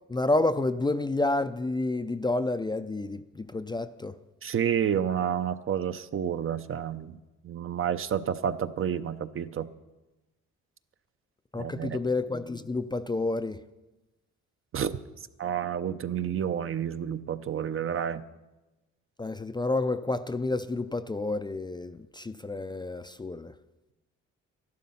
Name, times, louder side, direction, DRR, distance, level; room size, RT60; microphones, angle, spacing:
voice 1, 0.1-4.2 11.5-13.6 19.2-23.5, left 2 dB, 15° left, 0.4 m, -29 dB
voice 2, 4.4-7.2 7.4-9.7 11.5-12.0 14.7-15.0 15.4-18.2, right 8 dB, 45° right, 0.6 m, -30 dB
13.0 x 11.5 x 5.5 m
cardioid pair, 90°, 30 cm